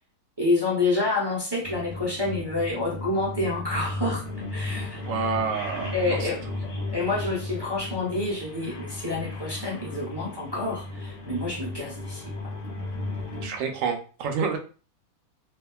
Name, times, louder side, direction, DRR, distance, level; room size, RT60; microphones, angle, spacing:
voice 1, 0.4-4.3 4.5-5.0 5.9-6.4 6.9-12.2, left 2 dB, 35° right, -7 dB, 0.4 m, -28 dB
sound 1, 1.6-13.5, left 2 dB, 85° left, 1.2 m, -35 dB
voice 2, 5.0-6.3 13.4-14.6, right 5 dB, 70° right, 4 dB, 0.9 m, -28 dB
2.8 x 2.4 x 2.3 m, 0.37 s
omnidirectional pair, 1.6 m